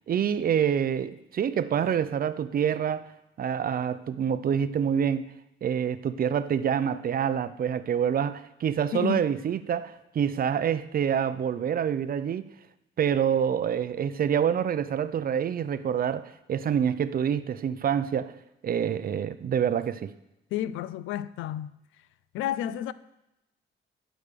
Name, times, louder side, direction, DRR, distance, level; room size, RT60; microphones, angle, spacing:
voice 1, 0.1-3.1 3.4-5.3 5.6-12.5 13.0-18.3 18.6-20.1, right 8 dB, 45° right, 0.6 m, -27 dB
voice 2, 8.9-9.3 20.5-21.7 22.3-22.9, left 11 dB, 90° left, 0.4 m, -31 dB
11.0 x 5.0 x 6.8 m
cardioid pair, 90°, 20 cm